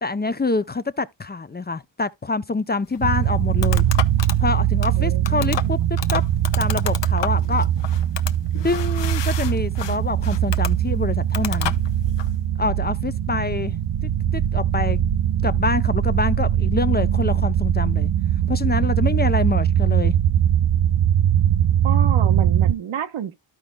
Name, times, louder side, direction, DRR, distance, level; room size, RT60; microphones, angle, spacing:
voice 1, 0.0-3.9 4.4-6.2 6.6-7.7 8.6-11.8 12.6-13.8 14.0-15.0 15.4-18.1 18.5-20.1, left 3 dB, 20° left, 0.5 m, -26 dB
sound 1, 2.8-12.3, left 10 dB, 65° left, 0.8 m, -33 dB
sound 2, 3.0-22.7, right 10 dB, 65° right, 0.6 m, -21 dB
voice 2, 4.9-5.8 21.8-23.3, right 9 dB, 90° right, 1.1 m, -29 dB
13.5 x 5.0 x 2.2 m
cardioid pair, 90°, 46 cm